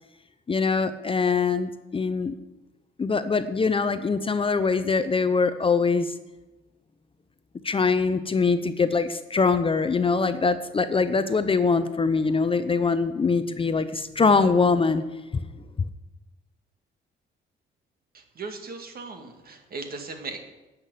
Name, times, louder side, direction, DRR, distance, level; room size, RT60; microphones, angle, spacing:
voice 1, 0.5-2.3 3.0-6.1 7.6-15.0 15.3-15.4, left 4 dB, 25° left, 11 dB, 0.6 m, -23 dB
voice 2, 18.1-20.4, right 3 dB, 50° right, 5 dB, 1.8 m, -38 dB
10.0 x 5.9 x 8.2 m, 1.1 s
cardioid pair, 90°, 20 cm